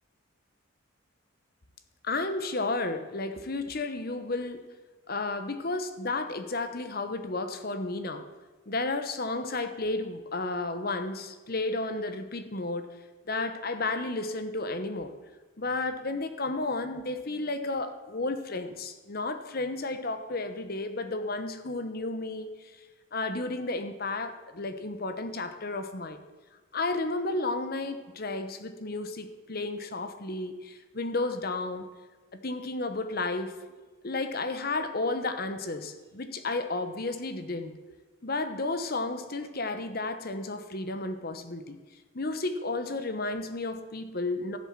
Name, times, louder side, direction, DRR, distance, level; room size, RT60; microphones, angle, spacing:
voice 1, 2.0-4.7 5.1-8.3 8.7-13.0 13.3-15.2 15.6-22.8 23.1-26.2 26.7-31.9 32.3-33.6 34.0-37.8 38.2-41.8 42.1-44.6, left 2 dB, 45° left, 9 dB, 1.0 m, -32 dB
14.0 x 8.0 x 7.3 m, 1.3 s
head